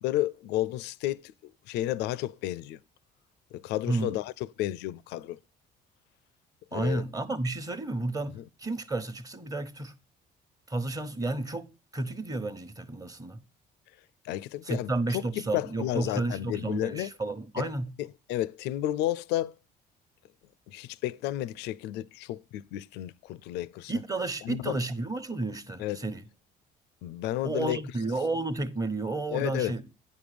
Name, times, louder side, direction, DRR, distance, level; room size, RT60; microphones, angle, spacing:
voice 1, 0.0-2.8 3.5-5.4 6.7-7.0 8.4-8.5 14.2-15.2 15.5-17.1 17.6-17.7 18.0-19.5 20.7-23.9 24.4-24.8 25.8-26.0 27.0-27.8 29.3-29.7, left 14 dB, 85° left, 0.4 m, -32 dB
voice 2, 3.9-4.2 6.7-9.9 10.7-13.4 14.6-17.9 23.9-26.2 27.4-29.8, right 2 dB, 20° right, 1.1 m, -32 dB
9.7 x 5.2 x 5.0 m
cardioid pair, 110°, 17 cm